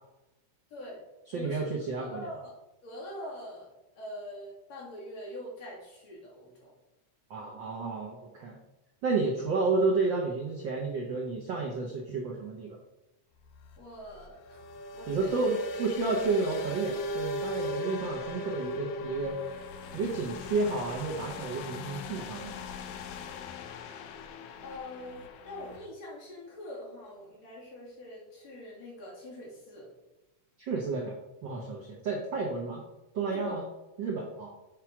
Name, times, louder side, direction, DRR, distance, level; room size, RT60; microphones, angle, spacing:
voice 1, 0.7-1.0 1.3-1.7 2.0-2.5 2.8-3.7 4.0-6.7 13.8-14.4 14.9-15.4 24.6-29.9 33.3-33.6, left 1 dB, 60° left, -5 dB, 3.7 m, -43 dB
voice 2, 1.3-2.3 7.3-8.6 9.0-12.8 15.1-19.7 19.9-22.5 30.6-31.2 31.4-32.8 33.1-33.6 34.0-34.5, right 3 dB, 65° right, 0 dB, 1.2 m, -31 dB
sound 1, 13.4-25.9, left 2 dB, 85° left, 2.2 m, -39 dB
7.4 x 4.7 x 5.9 m, 0.99 s
omnidirectional pair, 3.4 m